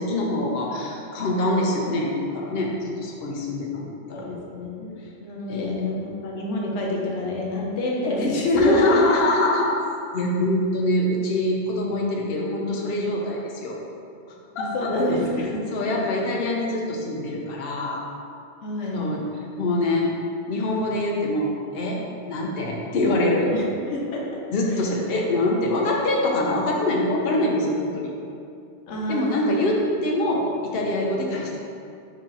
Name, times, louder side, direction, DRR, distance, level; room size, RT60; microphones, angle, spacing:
voice 1, 0.0-4.3 5.5-5.8 8.6-9.7 10.1-13.8 14.6-15.2 15.7-18.0 18.9-19.3 19.6-20.1 20.5-22.0 22.3-23.5 24.5-28.1 29.1-31.7, left 1 dB, 60° left, -1 dB, 0.8 m, -24 dB
voice 2, 4.1-4.9 5.2-9.0 14.6-15.5 15.8-16.0 18.6-19.1 23.4-24.2 24.7-24.8 28.9-29.7, left 1 dB, 85° left, -2 dB, 1.1 m, -27 dB
4.6 x 2.8 x 3.8 m, 2.5 s
omnidirectional pair, 1.2 m